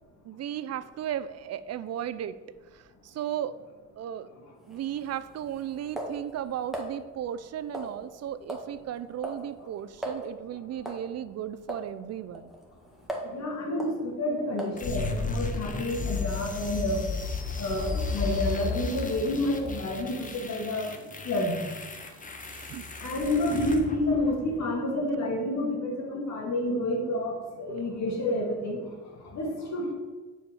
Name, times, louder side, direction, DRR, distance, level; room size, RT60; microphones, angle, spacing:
voice 1, 0.2-2.4 2.7-3.6 4.0-4.3 4.7-12.5 22.5-22.9, right 10 dB, 55° right, 13 dB, 0.5 m, -35 dB
sound 1, 4.6-6.9 7.7-8.2 8.5-8.7 9.0-9.5 9.7-9.8 10.0-10.3 10.9-11.1 11.7-11.9 12.4-13.4 13.8-14.0 14.6-14.9, right 1 dB, ahead, 1.6 m, -38 dB
voice 2, 13.3-17.0 17.6-20.9 21.2-21.6 23.0-28.8 29.2-29.9, left 1 dB, 65° left, 0 dB, 2.4 m, -29 dB
sound 2, 14.8-24.7, left 4 dB, 25° left, 1.1 m, -34 dB
6.9 x 5.0 x 6.8 m, 1.3 s
cardioid pair, 90°, 30 cm